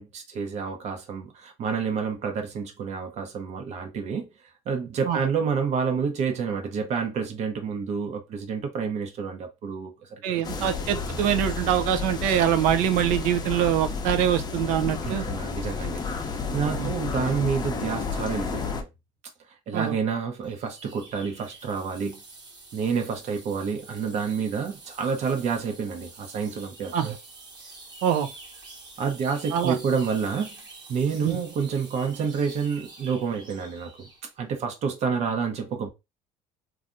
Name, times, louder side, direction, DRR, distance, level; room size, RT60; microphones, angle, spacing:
voice 1, 0.0-4.3 4.7-10.2 10.6-10.7 15.0-18.9 19.7-22.2 22.7-27.1 29.0-30.5 30.9-34.1 34.4-35.9, right 6 dB, 55° right, 0.9 m, -29 dB
voice 2, 10.2-15.2 16.8-16.9 19.7-19.9 26.9-27.2 28.0-28.3 29.5-29.8 31.2-31.4, right 10 dB, 85° right, 0.5 m, -24 dB
sound 1, 10.4-18.8, left 5 dB, 30° left, 0.6 m, -31 dB
sound 2, 20.4-34.3, right 3 dB, 30° right, 1.0 m, -47 dB
3.3 x 2.5 x 2.6 m
cardioid pair, 110°, 14 cm